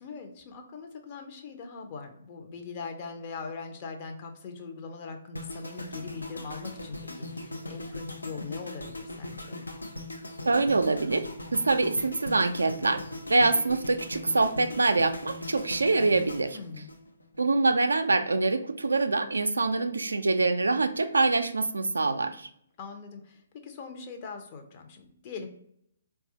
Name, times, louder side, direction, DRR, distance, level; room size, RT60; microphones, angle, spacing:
voice 1, 0.0-9.6 16.5-16.9 22.8-25.5, left 4 dB, 35° left, 4 dB, 0.6 m, -41 dB
sound 1, 5.4-17.5 17.8-18.1, left 1 dB, 85° left, 0.5 m, -40 dB
voice 2, 10.5-11.3 11.5-13.0 13.3-16.6 17.4-22.5, right 3 dB, 80° right, 9 dB, 0.3 m, -25 dB
4.0 x 2.3 x 2.7 m, 0.70 s
figure-of-eight pair, 130°, 0 cm